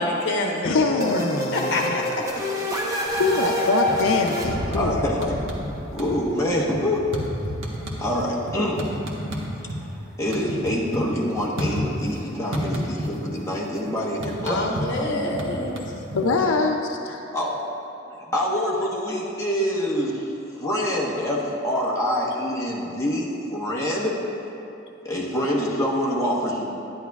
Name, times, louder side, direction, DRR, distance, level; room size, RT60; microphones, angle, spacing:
voice 1, 0.0-1.2 1.5-2.5 14.5-15.8, left 1 dB, 60° left, -1 dB, 1.1 m, -26 dB
voice 2, 0.6-2.0 3.2-5.3 16.1-17.2, left 3 dB, 90° left, 3 dB, 0.5 m, -24 dB
sound 1, 1.0-6.7, left 1 dB, 15° right, 0.9 m, -27 dB
sound 2, 3.1-3.6 3.9-4.9 5.2-5.7 5.9-9.8 10.1-12.2 12.5-13.4 13.6-16.5, equal, 90° right, 1.2 m, -31 dB
voice 3, 4.7-5.3 5.9-7.0 8.0-8.8 10.2-14.6 17.3-17.6 18.1-24.2 25.0-26.7, equal, 15° left, -5 dB, 1.1 m, -26 dB
11.0 x 10.0 x 2.3 m, 2.9 s
head